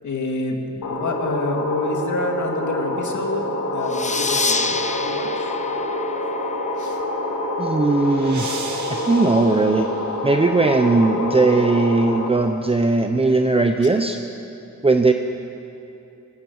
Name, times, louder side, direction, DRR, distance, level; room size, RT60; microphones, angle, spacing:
voice 1, 0.0-5.6 6.8-7.0, left 2 dB, 70° left, 2 dB, 2.8 m, -28 dB
sound 1, 0.8-12.3, left 1 dB, 90° left, 3.4 m, -26 dB
sound 2, 3.9-7.1, left 3 dB, 25° left, 0.9 m, -27 dB
sound 3, 7.3-10.6, right 4 dB, 70° right, 2.3 m, -38 dB
voice 2, 7.6-8.6 8.9-9.9 10.2-14.2 14.8-15.1, right 3 dB, 20° right, 5 dB, 0.8 m, -18 dB
19.5 x 19.0 x 8.1 m, 2.8 s
wide cardioid pair, 120°, 31 cm